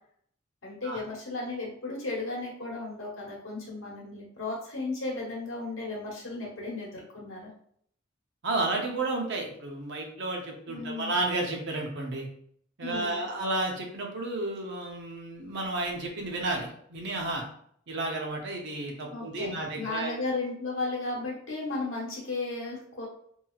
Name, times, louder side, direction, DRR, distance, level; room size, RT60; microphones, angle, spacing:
voice 1, 0.6-7.5 10.7-11.1 12.8-13.2 19.1-23.1, left 3 dB, 90° left, -4 dB, 1.2 m, -35 dB
voice 2, 8.4-12.3 12.8-17.4 17.9-20.1, right 2 dB, 65° right, 1 dB, 0.7 m, -32 dB
3.0 x 2.8 x 2.3 m, 0.65 s
head